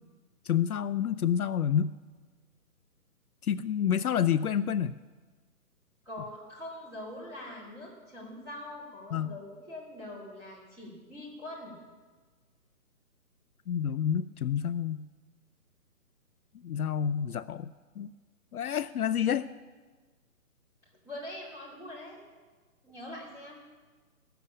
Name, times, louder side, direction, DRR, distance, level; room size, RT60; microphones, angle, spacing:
voice 1, 0.5-1.9 3.4-5.0 9.1-9.4 13.7-15.1 16.6-18.1 18.5-19.5, left 9 dB, 65° left, 13 dB, 0.5 m, -29 dB
voice 2, 6.0-11.7 21.0-22.2 22.8-23.6, left 1 dB, 5° right, -7 dB, 2.5 m, -43 dB
13.5 x 6.9 x 8.5 m, 1.4 s
hypercardioid pair, 165°, 47 cm